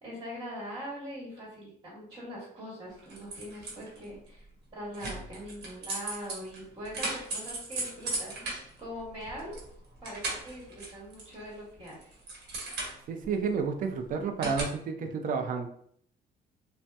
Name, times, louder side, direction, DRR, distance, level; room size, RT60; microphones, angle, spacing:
voice 1, 0.0-4.4 4.7-8.3 8.8-9.6 10.0-12.2, equal, 25° right, -4 dB, 1.2 m, -42 dB
sound 1, 3.0-4.0 4.9-9.7 9.9-11.5 11.8-13.3 14.4-14.6, right 2 dB, 75° right, 1.0 m, -37 dB
voice 2, 13.1-15.7, right 5 dB, 55° right, 6 dB, 0.5 m, -31 dB
2.8 x 2.0 x 3.3 m, 0.64 s
cardioid pair, 110°, 17 cm